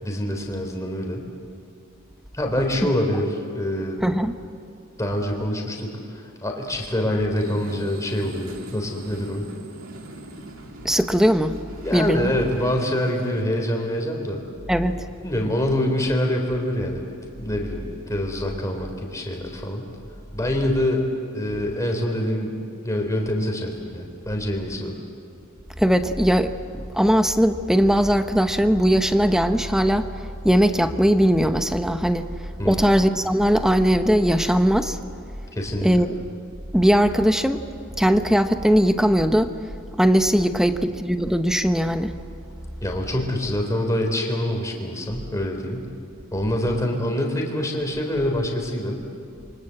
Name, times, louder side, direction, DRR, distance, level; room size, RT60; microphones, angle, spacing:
voice 1, 0.0-1.2 2.3-4.0 5.0-9.5 11.8-14.4 15.2-17.1 17.4-19.8 20.3-21.1 21.3-25.0 32.6-32.9 35.5-36.1 42.8-45.9 46.3-49.0, left 1 dB, 15° left, 1 dB, 3.9 m, -25 dB
voice 2, 4.0-4.3 10.8-11.5 11.9-12.3 14.7-15.0 25.8-26.5 26.9-30.1 30.4-32.3 32.6-35.0 35.8-36.1 36.7-37.6 38.0-39.5 40.0-42.1, equal, ahead, 8 dB, 0.9 m, -19 dB
sound 1, 7.3-13.4, right 2 dB, 65° right, 2.6 m, -42 dB
27.5 x 24.5 x 7.8 m, 2.4 s
head